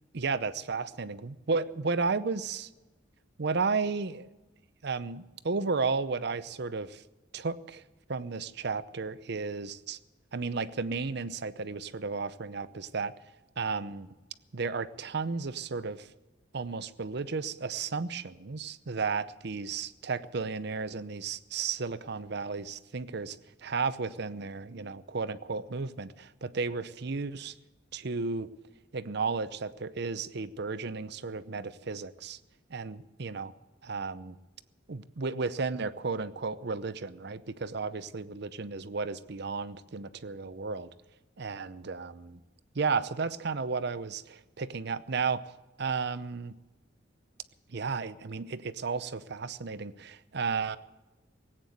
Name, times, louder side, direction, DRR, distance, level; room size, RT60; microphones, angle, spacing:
voice 1, 0.1-2.7 3.4-4.3 4.8-7.0 7.3-7.8 8.1-10.0 10.3-13.1 13.6-14.1 14.5-16.1 16.5-23.4 23.6-27.5 27.9-28.5 28.9-32.4 32.7-33.5 33.8-34.4 34.9-40.9 41.4-42.4 42.7-45.4 45.8-46.6 47.7-50.8, right 4 dB, 60° right, 14 dB, 0.7 m, -33 dB
18.5 x 9.0 x 7.9 m, 1.1 s
head